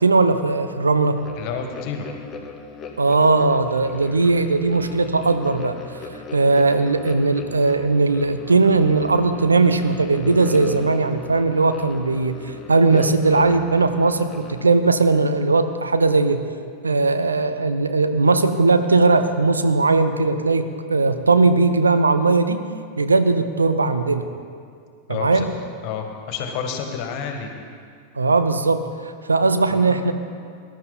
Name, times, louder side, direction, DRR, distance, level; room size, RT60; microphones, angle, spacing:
voice 1, 0.0-1.2 3.0-5.8 6.3-16.4 16.8-22.6 23.0-24.3 25.1-25.5 28.2-28.9 29.3-30.1, right 3 dB, 75° right, 9 dB, 0.8 m, -18 dB
sound 1, 1.1-14.7, left 4 dB, 25° left, 1.5 m, -38 dB
voice 2, 1.4-2.2 25.1-25.5 25.8-27.5 29.7-30.1, left 6 dB, 45° left, 4 dB, 1.8 m, -30 dB
20.5 x 11.5 x 4.1 m, 2.2 s
figure-of-eight pair, 90°, 0 cm